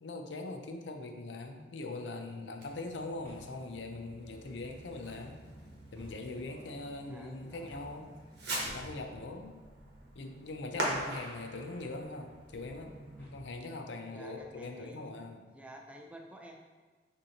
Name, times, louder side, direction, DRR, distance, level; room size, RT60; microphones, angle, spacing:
voice 1, 0.0-5.4 5.9-8.1 8.6-9.6 10.1-15.5, left 2 dB, 80° left, 5 dB, 0.5 m, -42 dB
sound 1, 2.0-2.3 3.2-3.8 4.9-5.4 5.9-6.8 7.7-8.2 8.8-9.4 10.8-11.4 11.7-12.2 13.2-13.7 14.4-14.9, equal, 10° left, 1.2 m, -57 dB
Fireworks, 2.6-13.2, right 1 dB, 65° right, 1.0 m, -43 dB
voice 2, 7.1-7.7 10.0-10.1 14.1-15.0 15.5-16.6, right 1 dB, 5° right, 1 dB, 0.4 m, -51 dB
6.2 x 2.7 x 2.8 m, 1.3 s
head